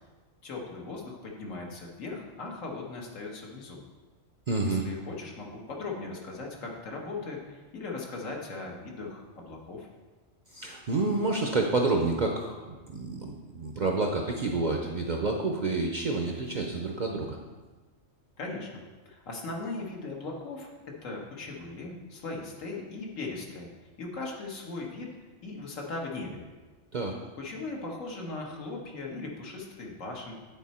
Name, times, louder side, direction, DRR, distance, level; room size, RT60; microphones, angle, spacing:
voice 1, 0.4-3.8 4.6-9.9 18.4-20.7 21.0-23.7 24.0-25.1 25.4-26.4 27.4-30.3, left 3 dB, 80° left, -1 dB, 1.6 m, -38 dB
voice 2, 4.5-4.8 10.5-17.4 26.9-27.2, right 3 dB, 50° right, 2 dB, 0.5 m, -29 dB
9.3 x 4.2 x 4.2 m, 1.3 s
omnidirectional pair, 1.3 m